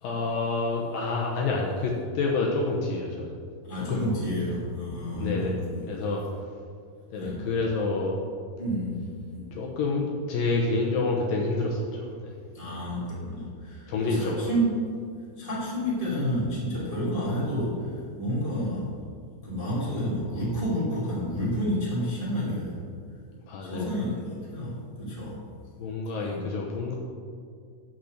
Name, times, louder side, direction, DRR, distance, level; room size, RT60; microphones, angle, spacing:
voice 1, 0.0-3.3 3.9-4.0 5.1-5.6 5.9-6.2 7.1-8.2 9.5-12.3 13.9-14.5 23.5-24.1 25.8-26.9, left 3 dB, 70° left, -2 dB, 2.3 m, -28 dB
voice 2, 3.7-6.1 7.1-7.4 8.6-9.4 12.5-14.8 15.4-17.9 18.2-18.9 19.4-22.7 23.6-25.4 26.3-26.4, equal, 15° right, -8 dB, 1.5 m, -30 dB
8.6 x 6.6 x 6.6 m, 2.3 s
omnidirectional pair, 4.7 m